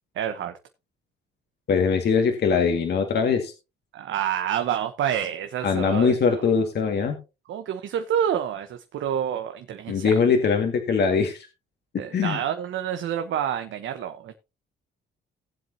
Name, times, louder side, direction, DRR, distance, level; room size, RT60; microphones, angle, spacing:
voice 1, 0.1-0.5 3.9-6.4 7.5-10.1 12.0-14.3, right 9 dB, 75° right, 7 dB, 1.1 m, -28 dB
voice 2, 1.7-3.5 5.6-7.2 9.9-11.5 12.1-12.4, left 5 dB, 55° left, 4 dB, 2.1 m, -22 dB
18.0 x 7.7 x 2.9 m, 0.28 s
cardioid pair, 90°, 20 cm